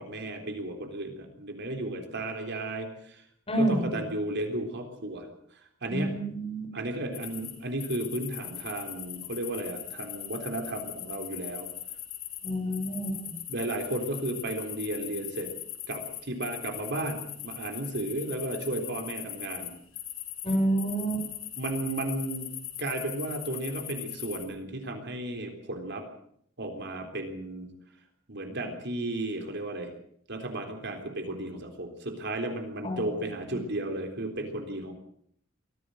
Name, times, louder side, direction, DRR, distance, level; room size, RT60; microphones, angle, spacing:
voice 1, 0.0-3.2 3.6-5.3 5.8-6.2 6.7-11.7 13.5-15.5 15.9-19.7 21.6-22.5 22.8-26.0 26.6-27.7 28.3-29.9 30.3-34.9, right 1 dB, 60° right, 4 dB, 3.7 m, -34 dB
voice 2, 3.5-3.9 5.9-6.7 12.4-13.3 20.4-21.2 32.8-33.6, right 1 dB, 30° left, 2 dB, 7.3 m, -29 dB
sound 1, 7.1-7.5 7.8-24.4, left 12 dB, 80° left, 4.9 m, -40 dB
23.0 x 16.0 x 7.8 m, 0.67 s
head